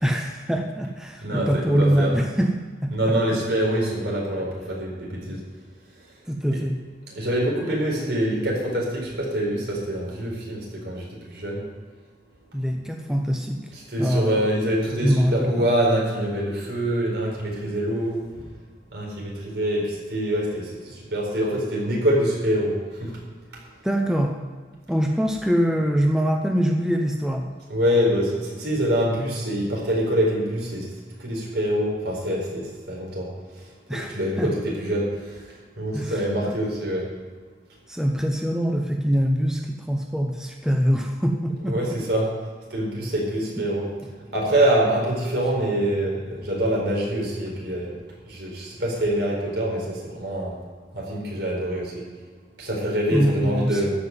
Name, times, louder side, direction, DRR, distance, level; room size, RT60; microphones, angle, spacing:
voice 1, 0.0-2.5 2.8-3.1 5.3-5.4 6.3-6.8 12.5-13.6 14.0-14.4 15.0-15.7 23.8-24.4 24.9-27.5 33.9-34.5 35.9-36.6 37.9-42.0 53.1-53.9, equal, 5° right, 2 dB, 0.7 m, -24 dB
voice 2, 1.2-2.1 2.9-5.4 6.5-6.6 7.1-11.6 13.7-18.2 18.9-23.2 27.7-30.9 31.2-33.3 34.1-37.1 41.6-42.3 42.7-48.0 48.3-50.6 50.9-52.1 52.6-53.9, right 1 dB, 70° right, -2 dB, 4.6 m, -25 dB
13.5 x 5.9 x 9.6 m, 1.5 s
head